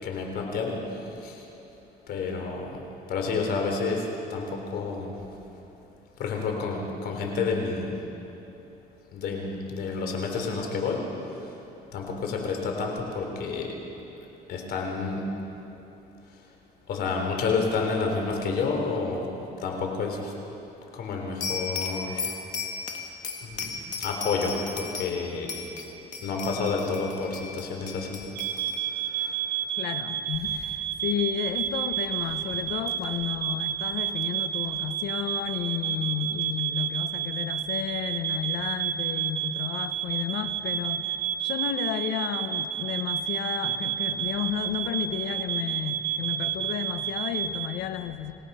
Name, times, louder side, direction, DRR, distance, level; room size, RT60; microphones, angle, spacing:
voice 1, 0.0-0.8 1.2-1.4 2.1-2.8 3.1-4.0 4.3-5.1 6.2-7.9 9.1-11.0 11.9-13.7 14.5-15.2 16.9-19.3 19.6-20.3 20.9-22.3 23.4-23.7 24.0-25.5 26.2-28.2 28.5-28.6 29.1-29.4, left 4 dB, 70° left, 2 dB, 3.9 m, -29 dB
sound 1, 21.4-25.2 25.5-28.9, left 5 dB, 45° left, 2.1 m, -35 dB
sound 2, 28.4-47.7, right 10 dB, 90° right, 0.8 m, -30 dB
voice 2, 29.8-48.3, left 10 dB, 85° left, 10 dB, 1.0 m, -32 dB
27.0 x 17.5 x 5.7 m, 3.0 s
cardioid pair, 110°, 17 cm